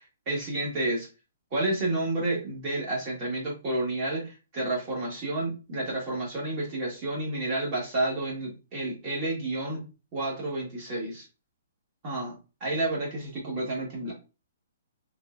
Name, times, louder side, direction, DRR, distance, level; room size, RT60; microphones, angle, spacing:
voice 1, 0.3-1.1 1.5-9.8 10.1-11.2 12.0-12.3 12.6-14.1, right 2 dB, 25° right, -2 dB, 1.3 m, -30 dB
3.6 x 3.1 x 2.4 m, 0.31 s
hypercardioid pair, 175°, 0 cm